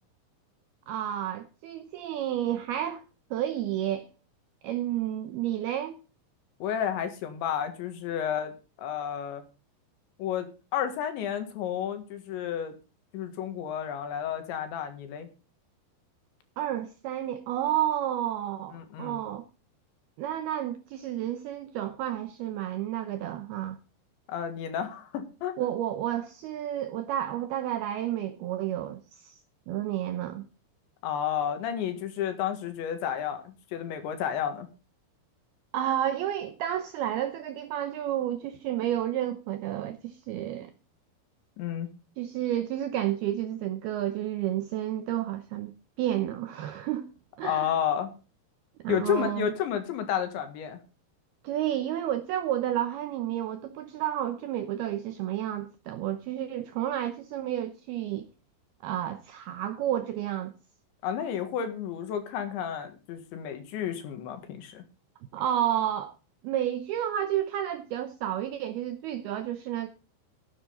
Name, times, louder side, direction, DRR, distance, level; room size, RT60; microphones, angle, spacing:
voice 1, 0.9-3.0 3.3-4.1 4.6-6.0 16.6-19.4 20.2-23.8 25.6-29.4 29.7-30.4 35.7-40.7 42.2-45.7 46.0-47.1 47.4-47.7 48.8-49.5 51.4-58.3 58.8-60.5 65.3-66.1 66.4-69.9, right 12 dB, 80° right, 2.3 m, -31 dB
voice 2, 6.6-8.5 8.8-9.4 10.2-12.8 13.1-15.3 18.7-19.2 24.3-25.5 31.0-34.7 41.6-41.9 47.4-48.1 48.9-50.8 61.0-64.8, left 9 dB, 75° left, 3.9 m, -31 dB
15.5 x 10.0 x 3.8 m
omnidirectional pair, 5.5 m